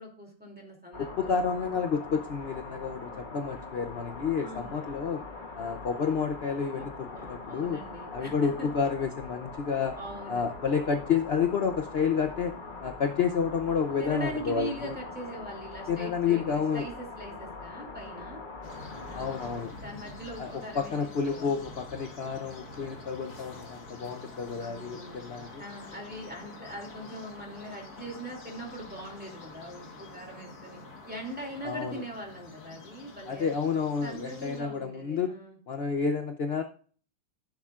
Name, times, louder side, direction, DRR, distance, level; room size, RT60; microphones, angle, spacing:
voice 1, 0.0-1.6 4.4-4.7 6.8-6.9 7.1-8.7 10.0-10.5 14.0-18.4 19.1-21.5 24.6-25.3 25.6-33.5 34.0-35.6, right 1 dB, 5° right, -1 dB, 2.5 m, -41 dB
sound 1, 0.9-19.6, left 3 dB, 30° left, 1.0 m, -42 dB
voice 2, 1.0-5.2 5.6-7.8 8.1-10.0 10.3-12.5 12.8-15.0 15.9-16.9 19.1-19.7 20.4-25.6 31.6-32.0 33.3-35.3 35.7-36.6, left 6 dB, 70° left, 6 dB, 0.5 m, -30 dB
sound 2, 18.6-34.6, left 3 dB, 55° left, 2.0 m, -47 dB
14.5 x 7.1 x 2.4 m, 0.43 s
omnidirectional pair, 2.0 m